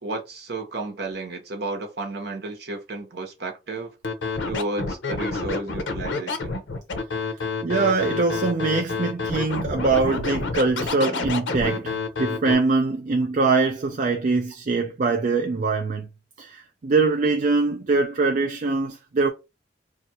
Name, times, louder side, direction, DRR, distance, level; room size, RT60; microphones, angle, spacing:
voice 1, 0.0-3.9 4.5-6.6, right 2 dB, 60° right, 1.0 m, -32 dB
Scratching (performance technique), 4.0-12.5, left 4 dB, 90° left, 0.7 m, -28 dB
voice 2, 7.6-16.1 16.4-19.3, right 3 dB, 45° right, 0.4 m, -23 dB
2.7 x 2.4 x 4.1 m
head